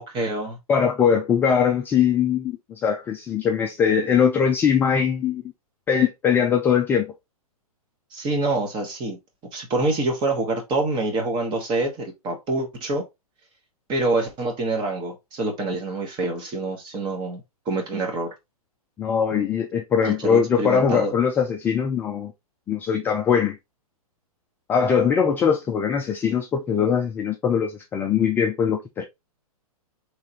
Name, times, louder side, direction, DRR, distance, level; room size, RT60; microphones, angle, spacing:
voice 1, 0.0-0.6 8.1-9.2 9.5-13.0 13.9-17.4 17.7-18.3 20.0-21.1, right 2 dB, 25° right, 1.2 m, -26 dB
voice 2, 0.7-5.4 5.9-7.1 19.0-22.3 22.7-23.6 24.7-29.0, left 7 dB, 10° left, 0.3 m, -21 dB
3.7 x 3.3 x 2.8 m
hypercardioid pair, 130°, 19 cm